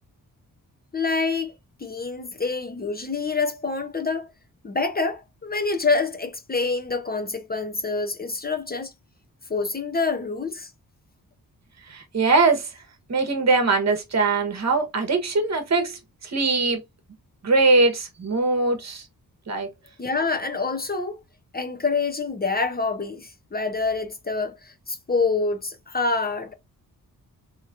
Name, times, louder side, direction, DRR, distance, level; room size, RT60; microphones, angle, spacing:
voice 1, 0.9-1.5 1.8-4.3 4.6-8.9 9.5-10.7 20.0-21.2 21.5-26.5, left 4 dB, 25° left, 0.7 m, -26 dB
voice 2, 11.9-12.7 13.1-16.8 17.4-19.0 19.5-19.7, right 3 dB, 45° right, 1.1 m, -21 dB
3.1 x 2.9 x 2.4 m
cardioid pair, 65°, 37 cm